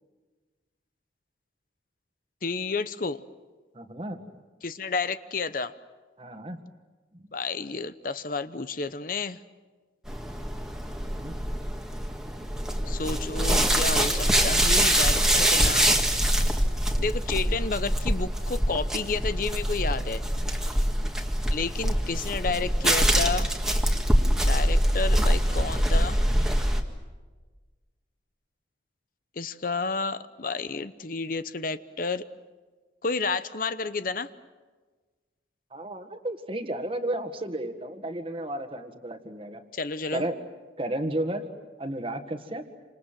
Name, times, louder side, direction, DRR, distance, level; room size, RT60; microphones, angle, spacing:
voice 1, 2.4-3.2 4.6-5.7 7.3-9.4 12.9-15.9 17.0-20.2 21.5-23.5 24.4-26.2 29.4-32.2 33.0-34.3 39.7-40.2, left 4 dB, 50° left, 13 dB, 0.8 m, -31 dB
voice 2, 3.7-4.4 6.2-6.6 7.1-7.2 11.2-11.4 35.7-39.6 40.1-40.4 40.8-41.5 41.8-42.7, right 1 dB, 30° right, 7 dB, 1.8 m, -33 dB
sound 1, 10.1-26.8, equal, 5° right, 1.9 m, -24 dB
29.0 x 26.5 x 7.6 m, 1.3 s
head